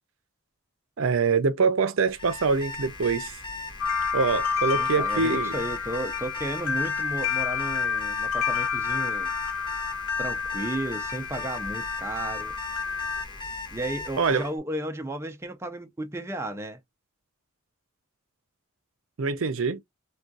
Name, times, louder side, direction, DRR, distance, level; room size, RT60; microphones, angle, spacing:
voice 1, 1.0-3.4 4.1-5.5 14.2-14.5 19.2-19.8, right 4 dB, 65° right, 0.5 m, -24 dB
Alarm, 2.1-14.5, left 4 dB, 20° left, 0.9 m, -38 dB
sound 1, 3.8-13.2, left 6 dB, 80° left, 0.4 m, -29 dB
voice 2, 4.7-9.3 10.2-12.5 13.7-16.8, right 1 dB, 10° right, 0.4 m, -34 dB
3.5 x 2.3 x 2.5 m
head